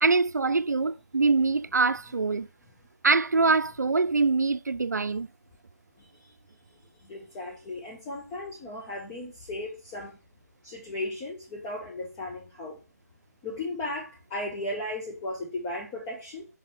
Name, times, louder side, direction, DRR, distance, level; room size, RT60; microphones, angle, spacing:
voice 1, 0.0-2.5 3.0-5.3, right 4 dB, 85° right, 0.4 m, -24 dB
voice 2, 6.0-6.3 6.7-10.2 10.6-12.8 13.4-16.5, left 2 dB, 15° left, 0.9 m, -36 dB
5.5 x 4.1 x 5.2 m
figure-of-eight pair, 155°, 9 cm